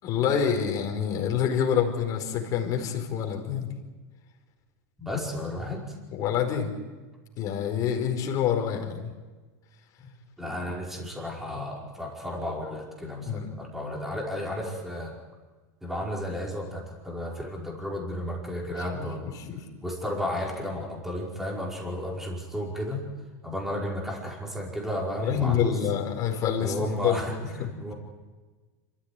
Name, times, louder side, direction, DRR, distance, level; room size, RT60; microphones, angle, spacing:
voice 1, 0.0-3.7 6.1-6.7 7.3-9.1 13.2-13.5 18.9-19.0 19.5-19.6 25.2-26.8 27.0-27.2 27.6-27.7, left 8 dB, 40° left, 3 dB, 4.8 m, -27 dB
voice 2, 5.0-6.0 10.0-10.1 10.4-15.1 15.8-19.3 19.8-23.0 23.4-25.8 26.6-27.9, left 1 dB, 5° right, -2 dB, 5.1 m, -33 dB
26.5 x 14.5 x 9.9 m, 1.3 s
supercardioid pair, 135°, 9 cm